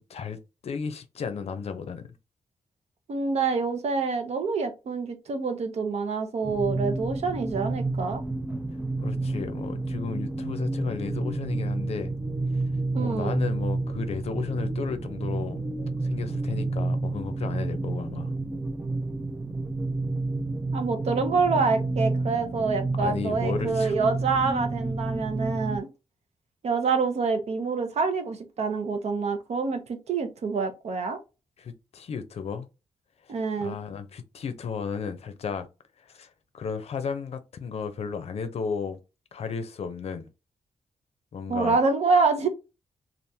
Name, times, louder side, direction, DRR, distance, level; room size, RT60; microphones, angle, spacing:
voice 1, 0.0-2.1 9.0-12.1 12.5-12.6 13.0-15.6 16.0-18.4 23.0-24.0 31.6-32.7 33.6-35.7 36.1-39.0 39.3-40.3 41.3-41.8, left 6 dB, 60° left, 0.5 m, -34 dB
voice 2, 3.1-8.2 12.9-13.4 20.7-25.9 26.6-31.2 33.3-33.8 41.5-42.5, right 4 dB, 65° right, 0.7 m, -26 dB
sound 1, 6.4-25.8, right 2 dB, 10° right, 0.4 m, -30 dB
3.4 x 2.4 x 2.7 m
wide cardioid pair, 140°, 12 cm